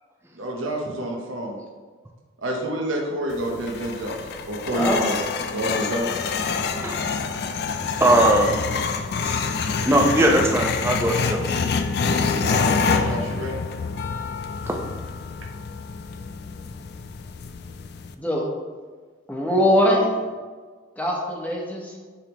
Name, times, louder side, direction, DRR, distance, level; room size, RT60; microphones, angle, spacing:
voice 1, 0.4-1.6 2.4-4.2 4.5-5.1 5.5-6.2 12.4-13.6, right 1 dB, 85° right, -1 dB, 0.9 m, -28 dB
sound 1, 3.3-18.1, left 5 dB, 55° left, 0.3 m, -27 dB
voice 2, 4.7-5.0 18.2-18.4 19.3-20.1 21.0-21.9, equal, 10° left, -2 dB, 1.0 m, -21 dB
voice 3, 6.7-7.1 8.0-8.5 9.2-9.4 9.9-11.4, right 1 dB, 15° right, 0 dB, 0.7 m, -19 dB
10.5 x 3.4 x 3.0 m, 1.4 s
head